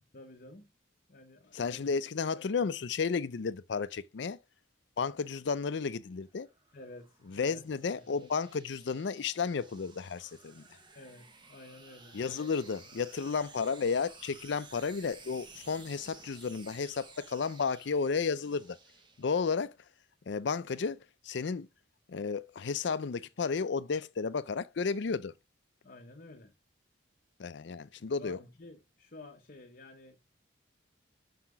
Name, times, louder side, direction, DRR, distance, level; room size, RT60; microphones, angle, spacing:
voice 1, 0.1-0.7 1.1-1.9 6.7-7.7 7.9-8.2 10.9-12.2 25.8-26.5 28.2-30.2, left 2 dB, 45° left, 0.9 m, -51 dB
voice 2, 1.5-4.4 5.0-6.5 7.3-10.6 12.1-18.8 19.2-19.8 20.3-21.7 22.1-25.3 27.4-28.4, left 5 dB, 65° left, 0.5 m, -33 dB
sound 1, 6.2-19.7, right 4 dB, 25° right, 1.1 m, -55 dB
5.8 x 5.6 x 5.9 m
head